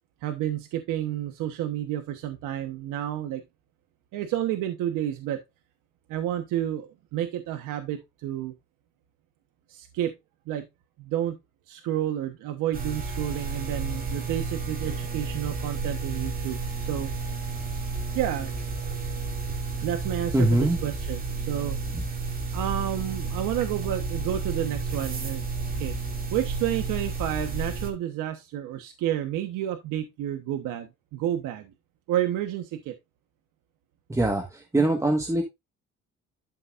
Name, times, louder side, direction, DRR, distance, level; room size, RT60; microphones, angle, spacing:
voice 1, 0.2-3.4 4.1-5.4 6.1-8.5 9.7-10.1 10.5-10.6 11.0-11.4 11.7-17.1 18.1-18.5 19.8-21.8 22.5-25.4 25.8-26.0 26.3-31.7 32.1-32.9, right 12 dB, 85° right, 1.2 m, -30 dB
sound 1, 12.7-27.9, right 4 dB, 30° right, 2.5 m, -31 dB
voice 2, 20.3-20.8 21.9-22.0 34.1-35.4, right 1 dB, 10° right, 1.5 m, -23 dB
12.0 x 5.7 x 2.5 m
cardioid pair, 125°, 31 cm